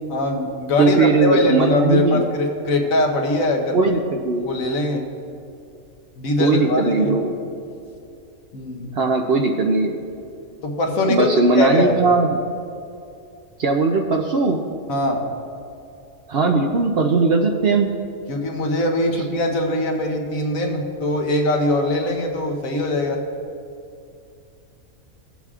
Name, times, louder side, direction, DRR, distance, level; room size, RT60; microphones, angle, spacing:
voice 1, 0.1-3.8 4.5-5.0 6.2-7.2 8.5-8.9 10.6-11.3 11.6-11.9 14.9-15.2 18.3-23.2, left 1 dB, 70° left, 2 dB, 1.4 m, -22 dB
voice 2, 0.8-2.2 3.7-4.5 6.4-7.3 8.9-10.0 11.1-12.4 13.6-14.6 16.3-17.9, right 3 dB, 55° right, 3 dB, 0.7 m, -19 dB
17.5 x 7.4 x 2.4 m, 2.5 s
omnidirectional pair, 1.5 m